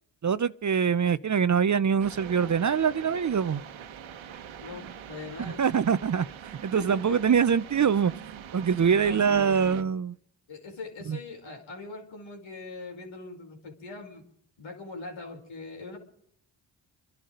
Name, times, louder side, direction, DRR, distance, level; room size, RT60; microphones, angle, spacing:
voice 1, 0.2-3.6 5.4-8.1 8.5-10.1 11.1-11.2, right 7 dB, 40° right, 0.8 m, -24 dB
sound 1, 2.0-9.8, right 9 dB, 75° right, 1.4 m, -43 dB
voice 2, 4.6-5.7 6.7-7.6 8.8-9.9 10.5-14.2 14.6-16.0, left 3 dB, 75° left, 4.9 m, -41 dB
27.0 x 11.5 x 3.9 m
supercardioid pair, 55°, 47 cm